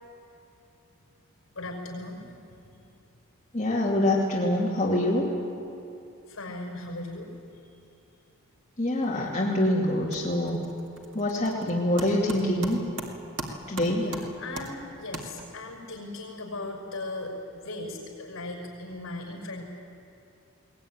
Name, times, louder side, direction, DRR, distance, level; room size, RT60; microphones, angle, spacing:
voice 1, 1.6-2.9 6.3-7.3 14.0-19.7, left 2 dB, 65° left, 2 dB, 5.7 m, -38 dB
voice 2, 3.5-5.3 8.8-10.6 11.1-12.8 13.7-14.1, left 1 dB, 30° left, -5 dB, 2.7 m, -25 dB
sound 1, 9.2-9.6 9.9-15.8, right 2 dB, 55° right, 2.4 m, -40 dB
22.0 x 19.0 x 9.7 m, 2.7 s
head